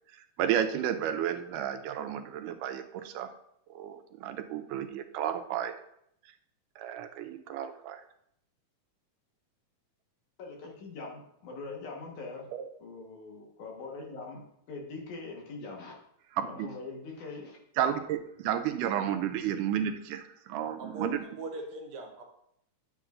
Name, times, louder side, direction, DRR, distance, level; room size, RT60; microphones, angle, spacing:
voice 1, 0.1-3.3 3.7-5.7 6.2-6.3 6.8-8.0 12.5-12.6 16.3-16.7 17.8-21.2, right 10 dB, 90° right, 7 dB, 2.2 m, -32 dB
voice 2, 10.4-12.5 12.8-15.9 16.4-17.9, left 3 dB, 70° left, 0 dB, 2.8 m, -43 dB
voice 3, 20.8-21.1 21.4-22.2, right 2 dB, 70° right, 3 dB, 2.0 m, -40 dB
10.5 x 7.7 x 2.5 m, 0.73 s
omnidirectional pair, 3.6 m